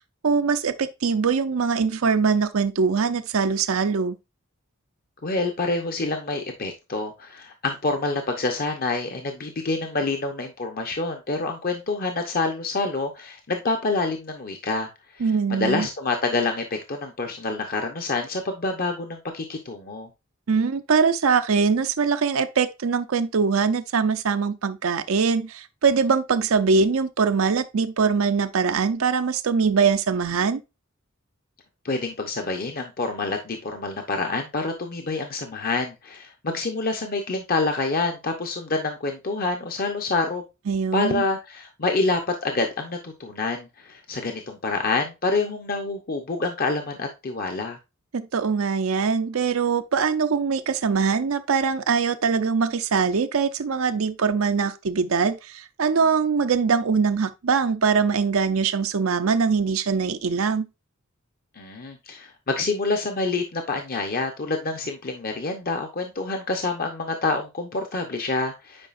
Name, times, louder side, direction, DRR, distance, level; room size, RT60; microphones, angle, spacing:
voice 1, 0.2-4.2 15.2-15.9 20.5-30.6 40.7-41.2 48.1-60.7, right 5 dB, 80° right, 0.6 m, -22 dB
voice 2, 5.2-14.9 15.1-20.1 31.8-40.4 40.9-47.8 61.6-68.9, left 3 dB, 45° left, 0.9 m, -27 dB
8.8 x 4.9 x 2.5 m
head